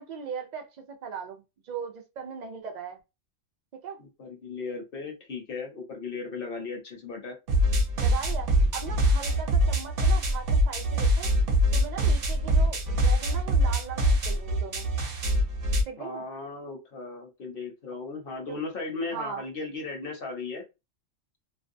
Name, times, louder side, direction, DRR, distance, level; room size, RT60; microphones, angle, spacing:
voice 1, 0.0-3.0 3.8-4.0 8.0-11.3 11.7-14.9 15.9-16.2 18.5-18.6 19.1-19.4, right 6 dB, 80° right, 0.4 m, -38 dB
voice 2, 4.0-7.4 16.0-20.6, left 4 dB, 50° left, 0.8 m, -36 dB
sound 1, 7.5-15.8, equal, 55° right, 0.8 m, -24 dB
2.5 x 2.1 x 2.5 m
omnidirectional pair, 1.3 m